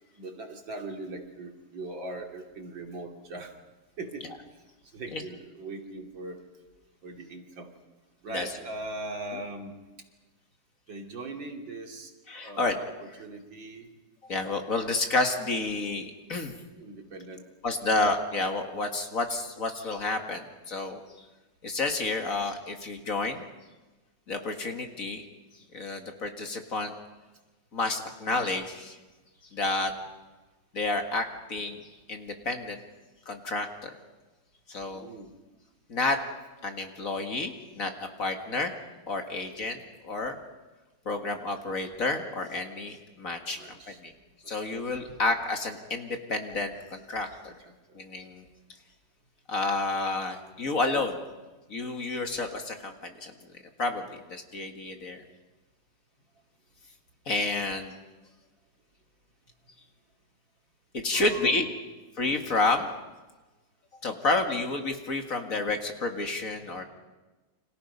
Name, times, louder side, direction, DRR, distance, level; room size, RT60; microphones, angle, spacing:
voice 1, 0.2-3.5 4.0-4.3 4.9-6.4 7.0-7.7 8.2-9.8 10.9-12.1 12.4-13.9 16.7-17.8 28.7-28.8 34.9-35.3 43.5-44.0 44.4-44.5 47.4-48.0 61.1-61.8 66.4-66.8, right 2 dB, 75° right, 2 dB, 3.4 m, -40 dB
voice 2, 12.3-12.7 14.2-16.6 17.6-21.0 21.6-23.5 24.3-25.2 25.7-26.9 27.7-29.0 29.5-29.9 30.7-31.8 32.1-32.8 33.3-33.9 34.7-35.1 35.9-36.2 36.6-37.9 38.2-38.7 39.1-39.8 40.0-40.4 41.1-44.1 44.5-47.5 48.0-48.4 49.5-51.2 51.7-53.3 53.8-55.2 57.3-57.9 60.9-61.7 62.2-62.9 64.0-66.8, left 3 dB, 45° left, 5 dB, 2.2 m, -30 dB
29.5 x 26.0 x 5.5 m, 1.2 s
omnidirectional pair, 2.1 m